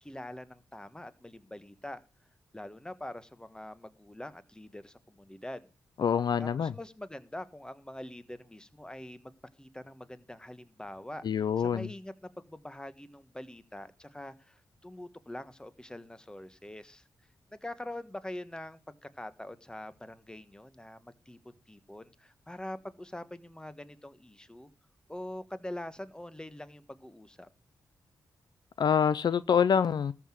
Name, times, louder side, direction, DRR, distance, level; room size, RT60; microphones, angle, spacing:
voice 1, 0.0-2.0 2.5-5.7 6.4-9.3 9.6-17.0 17.5-24.7 25.1-27.5, left 1 dB, 10° left, 1.3 m, -44 dB
voice 2, 6.0-6.7 11.2-11.9 28.8-30.1, left 7 dB, 65° left, 0.5 m, -26 dB
13.5 x 5.9 x 7.6 m
cardioid pair, 60°, 8 cm